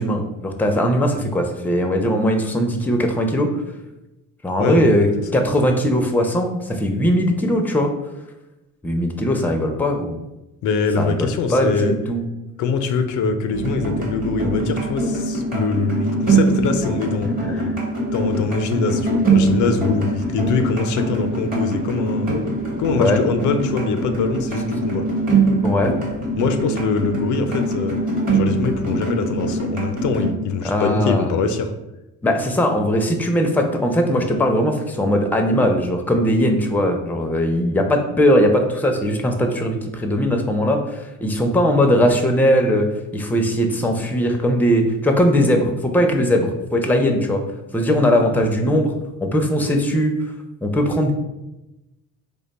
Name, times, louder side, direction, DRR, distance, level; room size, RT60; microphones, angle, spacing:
voice 1, 0.0-3.6 4.4-7.9 8.8-10.2 11.0-12.3 17.2-17.7 22.9-23.2 25.6-26.0 30.6-31.3 32.2-42.9 43.1-47.4 47.7-48.9 49.2-50.2 50.6-51.1, equal, 5° left, 4 dB, 0.4 m, -19 dB
voice 2, 4.6-5.1 10.6-11.9 12.6-17.3 18.1-22.3 22.8-25.1 26.4-31.7, left 4 dB, 75° left, 8 dB, 0.4 m, -23 dB
sound 1, 13.5-30.3, right 3 dB, 30° right, 1.0 m, -23 dB
3.1 x 2.2 x 4.0 m, 0.97 s
cardioid pair, 90°, 30 cm